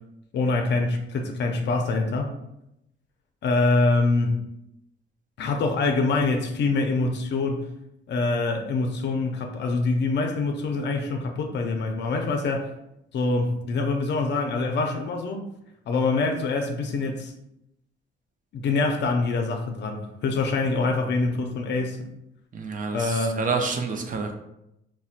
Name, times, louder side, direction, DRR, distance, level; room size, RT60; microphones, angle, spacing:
voice 1, 0.3-2.3 3.4-4.4 5.4-7.7 8.1-12.7 13.1-15.4 15.9-17.3 18.5-22.1 22.9-23.4, left 3 dB, 60° left, 4 dB, 0.5 m, -25 dB
voice 2, 22.5-24.3, right 4 dB, 45° right, 4 dB, 0.5 m, -28 dB
4.0 x 2.1 x 2.4 m, 0.83 s
cardioid pair, 90°, 20 cm